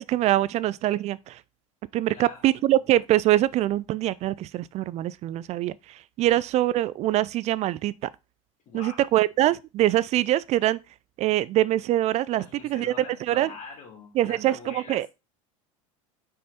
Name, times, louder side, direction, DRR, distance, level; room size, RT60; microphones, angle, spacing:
voice 1, 0.0-1.4 1.9-8.1 8.7-10.8 11.2-12.9 13.3-13.5 14.2-15.1, right 14 dB, 40° right, 0.4 m, -24 dB
voice 2, 2.1-2.8 6.2-6.3 8.7-9.0 12.3-15.1, left 5 dB, 45° left, 3.6 m, -44 dB
5.5 x 5.1 x 4.2 m
supercardioid pair, 105°, 17 cm